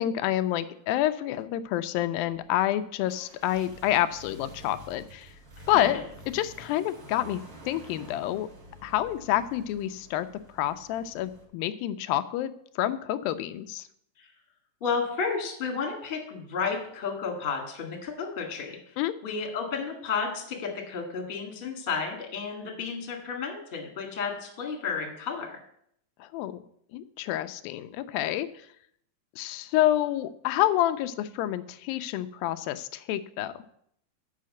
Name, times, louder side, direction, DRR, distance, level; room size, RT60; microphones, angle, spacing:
voice 1, 0.0-5.3 5.7-6.0 6.3-8.5 8.8-10.3 10.5-13.9 19.0-19.1 26.2-26.6 26.9-28.5 29.4-33.5, left 13 dB, 90° left, 11 dB, 2.4 m, -28 dB
sound 1, 2.2-11.4, right 1 dB, 45° right, 1.1 m, -49 dB
voice 2, 5.6-6.0 14.2-14.3 14.8-18.9 19.2-25.6, left 5 dB, 30° left, 1 dB, 1.0 m, -32 dB
7.5 x 5.7 x 7.4 m, 0.69 s
omnidirectional pair, 4.1 m